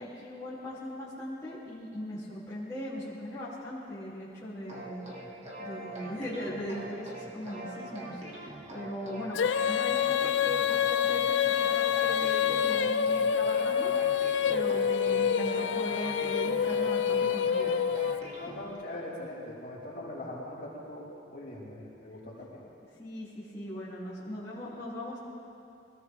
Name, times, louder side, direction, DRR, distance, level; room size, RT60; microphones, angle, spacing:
voice 1, 0.0-5.0 5.6-9.4 9.6-17.8 23.0-25.2, equal, 15° left, -11 dB, 3.0 m, -39 dB
sound 1, 4.7-18.7, right 1 dB, 35° right, 1.9 m, -43 dB
Female singing, 9.3-18.5, left 8 dB, 75° left, 0.4 m, -27 dB
voice 2, 18.4-22.6, left 1 dB, 45° left, -7 dB, 4.1 m, -41 dB
23.0 x 17.5 x 3.6 m, 2.7 s
head